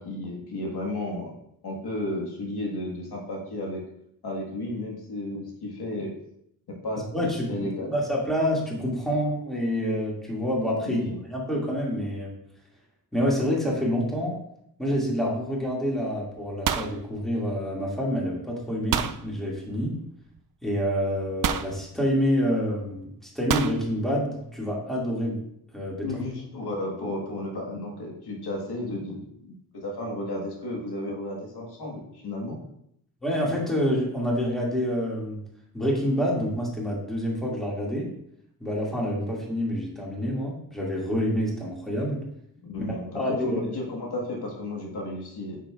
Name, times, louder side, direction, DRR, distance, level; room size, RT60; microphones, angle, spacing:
voice 1, 0.0-1.3 1.6-3.8 4.2-6.1 6.7-7.1 7.5-8.0 10.8-11.2 26.0-32.6 42.6-45.6, left 1 dB, 85° left, -1 dB, 1.8 m, -33 dB
voice 2, 7.1-7.5 7.9-12.3 13.1-14.3 14.8-19.9 20.6-25.4 25.7-26.1 33.2-35.4 35.7-38.1 38.6-42.2 43.1-43.6, equal, ahead, -4 dB, 2.3 m, -27 dB
sound 1, 15.7-16.0 16.3-17.9 18.9-19.2 20.4-20.5 21.4-21.8 23.5-23.8, right 8 dB, 60° right, 0.5 m, -28 dB
8.7 x 6.5 x 2.5 m, 0.74 s
wide cardioid pair, 90°, 37 cm